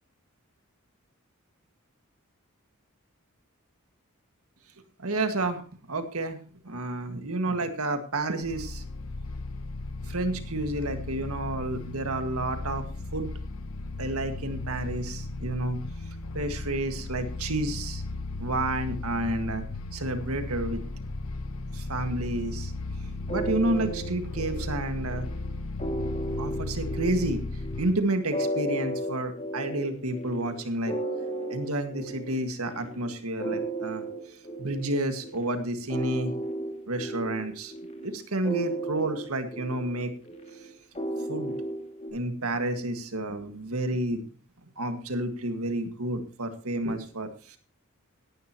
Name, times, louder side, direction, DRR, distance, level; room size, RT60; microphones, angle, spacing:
voice 1, 5.0-5.6 5.9-6.4 6.6-8.8 10.1-13.3 14.0-15.8 16.3-18.0 18.4-19.6 19.9-20.8 21.7-22.7 23.3-25.3 26.4-27.4 27.8-30.9 31.5-36.3 36.9-37.7 38.0-40.1 40.6-40.7 41.3-41.6 42.1-44.2 44.8-47.6, right 1 dB, 80° right, 7 dB, 1.8 m, -30 dB
sound 1, 8.4-27.9, left 2 dB, 70° left, 0.8 m, -36 dB
sound 2, 23.3-42.1, right 1 dB, 30° left, 2.3 m, -35 dB
17.5 x 11.5 x 3.0 m, 0.40 s
head